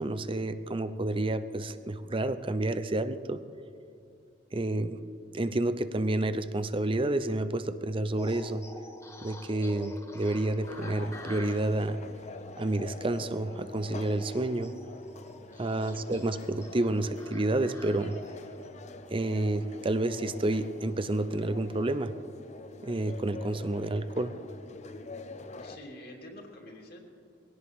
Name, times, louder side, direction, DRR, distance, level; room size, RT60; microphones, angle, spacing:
voice 1, 0.0-3.4 4.5-5.0 5.3-8.6 9.2-12.0 12.6-14.7 15.6-18.2 19.1-22.1 22.8-24.4, right 2 dB, 30° right, 12 dB, 0.6 m, -29 dB
sound 1, 8.2-20.4, left 1 dB, 15° left, 1.4 m, -49 dB
sound 2, 10.6-25.8, left 3 dB, 40° left, 0.8 m, -46 dB
voice 2, 25.6-27.0, left 1 dB, 60° left, -1 dB, 3.0 m, -47 dB
22.5 x 17.5 x 3.6 m, 2.6 s
head